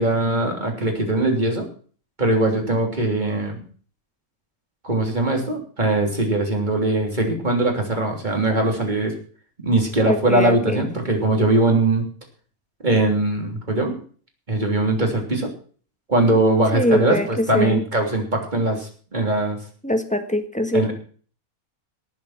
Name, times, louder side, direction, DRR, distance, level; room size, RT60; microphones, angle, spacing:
voice 1, 0.0-1.7 2.2-3.6 4.8-9.1 9.6-12.0 12.8-14.0 14.5-15.5 16.1-19.6 20.7-20.9, right 2 dB, 30° right, 2 dB, 3.4 m, -21 dB
voice 2, 10.0-10.9 16.7-17.8 19.8-20.9, left 1 dB, 5° left, 7 dB, 1.4 m, -23 dB
18.5 x 7.3 x 5.9 m, 0.43 s
omnidirectional pair, 1.6 m